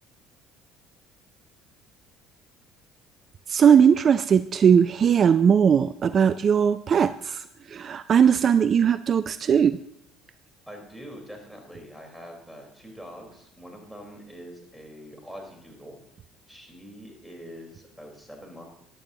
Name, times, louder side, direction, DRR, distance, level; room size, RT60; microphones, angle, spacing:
voice 1, 3.5-9.8, right 7 dB, 45° right, 14 dB, 0.4 m, -19 dB
voice 2, 10.7-16.0 16.5-18.6, equal, ahead, 1 dB, 4.1 m, -44 dB
14.0 x 10.5 x 2.9 m, 0.79 s
hypercardioid pair, 65°, 0 cm